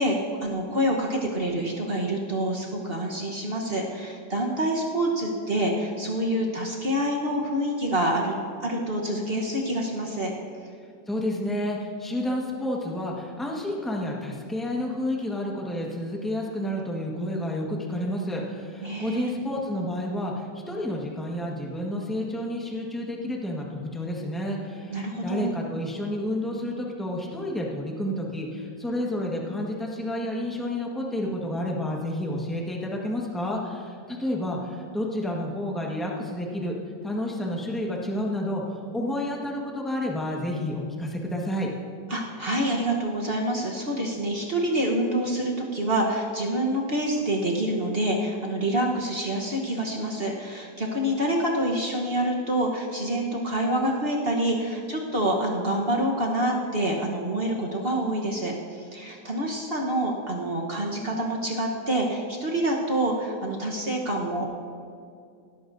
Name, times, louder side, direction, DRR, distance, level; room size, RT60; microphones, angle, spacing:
voice 1, 0.0-8.3 8.6-10.3 18.8-19.4 24.9-25.5 42.1-64.4, right 1 dB, 35° right, -1 dB, 1.1 m, -27 dB
voice 2, 11.1-36.8 37.0-41.7, left 1 dB, ahead, -2 dB, 1.1 m, -30 dB
18.5 x 13.0 x 2.7 m, 2.4 s
omnidirectional pair, 2.0 m